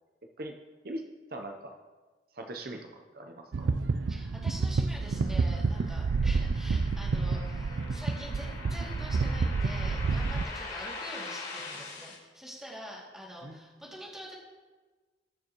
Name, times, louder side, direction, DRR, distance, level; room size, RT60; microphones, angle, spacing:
voice 1, 1.3-1.7 2.3-3.7 13.4-13.6, right 1 dB, 55° right, 3 dB, 0.8 m, -41 dB
sound 1, 3.5-10.4, right 4 dB, 85° right, 0.4 m, -29 dB
voice 2, 4.1-14.3, equal, 5° right, -5 dB, 2.5 m, -45 dB
sound 2, 4.3-12.2, left 3 dB, 70° left, 3.3 m, -43 dB
20.0 x 6.9 x 3.1 m, 1.3 s
head